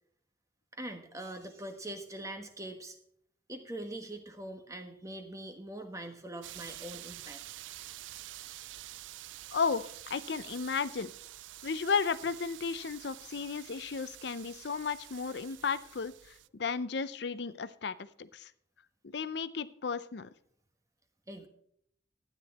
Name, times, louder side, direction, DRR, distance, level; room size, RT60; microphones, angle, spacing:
voice 1, 0.7-3.0 3.5-7.4 8.4-8.7 21.3-21.5, right 1 dB, 15° right, 6 dB, 1.3 m, -43 dB
sound 1, 6.4-16.5, right 15 dB, 75° right, 0.3 m, -48 dB
voice 2, 9.5-11.1 11.6-18.5 19.0-20.3, left 5 dB, 60° left, 15 dB, 0.5 m, -34 dB
12.5 x 9.7 x 4.1 m, 0.66 s
head